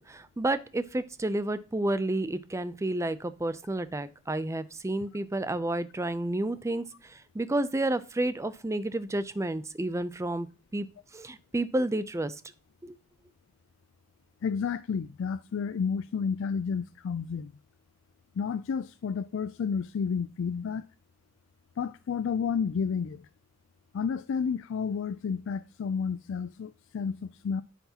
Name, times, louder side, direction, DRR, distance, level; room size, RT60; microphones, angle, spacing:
voice 1, 0.0-10.9 11.1-12.3 12.8-12.9, right 1 dB, 15° right, 0.4 m, -30 dB
voice 2, 14.4-17.5 18.4-20.8 21.8-23.3 23.9-27.6, left 6 dB, 65° left, 0.3 m, -31 dB
9.7 x 5.9 x 2.8 m
head